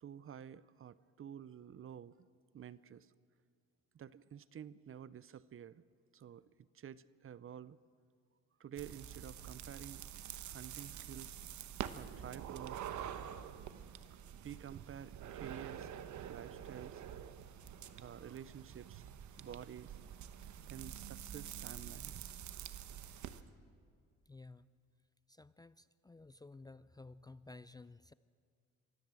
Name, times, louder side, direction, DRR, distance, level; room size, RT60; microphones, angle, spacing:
voice 1, 0.0-2.1 2.5-3.1 3.9-5.8 6.1-6.4 6.7-7.8 8.6-10.0 10.4-11.3 11.9-12.9 14.4-15.9 16.2-17.0 18.0-19.1 19.4-20.0 20.7-22.3, right 9 dB, 45° right, 18 dB, 0.7 m, -50 dB
sound 1, 8.8-23.4, right 9 dB, 70° right, 1.1 m, -47 dB
voice 2, 18.0-18.4 24.3-24.7 25.3-28.1, left 3 dB, 15° left, 15 dB, 0.4 m, -55 dB
24.5 x 14.5 x 7.7 m, 2.1 s
cardioid pair, 90°, 30 cm